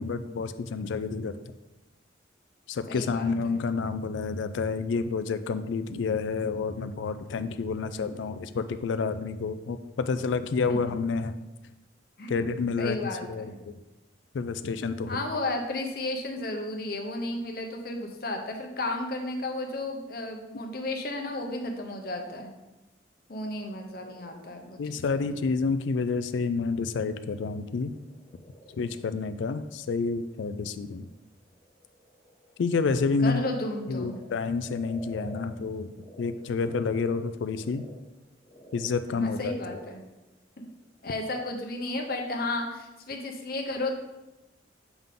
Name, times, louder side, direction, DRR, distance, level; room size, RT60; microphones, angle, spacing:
voice 1, 0.0-1.4 2.7-11.3 12.3-13.0 13.3-13.8 14.3-15.2 24.8-27.9 28.8-31.1 32.6-33.4 33.9-35.9 36.2-37.8 38.7-39.8, left 4 dB, 75° left, 11 dB, 0.3 m, -29 dB
voice 2, 2.9-3.5 10.7-10.8 12.2-12.3 12.8-13.6 15.1-22.5 23.3-25.3 33.2-34.2 39.1-40.0 40.6-40.7 41.0-44.0, left 2 dB, 50° left, 3 dB, 0.8 m, -33 dB
Frog, 23.8-36.3 36.6-41.3, equal, 25° left, 1.9 m, -52 dB
7.0 x 3.6 x 3.8 m, 1.0 s
head